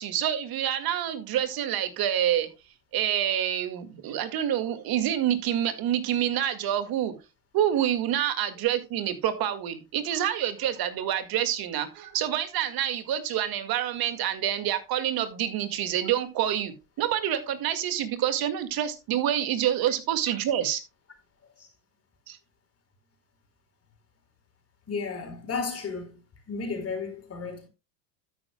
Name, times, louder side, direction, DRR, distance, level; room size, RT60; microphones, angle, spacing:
voice 1, 0.0-2.5 2.9-7.1 7.5-20.8 22.3-22.4, right 11 dB, 45° right, 2.0 m, -27 dB
voice 2, 24.9-26.1 26.5-27.7, left 4 dB, 30° left, 4.2 m, -33 dB
12.5 x 9.7 x 2.3 m
hypercardioid pair, 95°, 49 cm